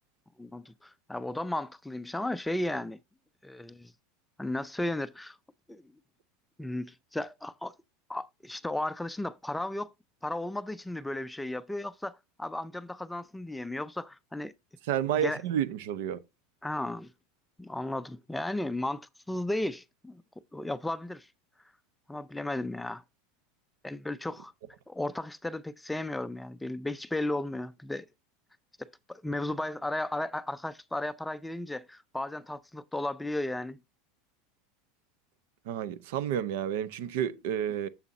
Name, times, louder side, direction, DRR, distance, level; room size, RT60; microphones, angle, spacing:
voice 1, 0.4-3.0 3.4-3.9 4.4-5.4 5.7-5.8 6.6-7.7 8.1-9.9 10.2-14.5 15.2-15.4 16.6-17.1 17.6-20.2 20.5-21.3 22.1-23.0 23.8-24.5 24.9-28.1 28.8-33.8, left 1 dB, 5° left, 0.4 m, -34 dB
voice 2, 14.8-16.2 35.6-37.9, right 9 dB, 70° right, 0.7 m, -30 dB
7.2 x 6.9 x 2.7 m
supercardioid pair, 115°, 0 cm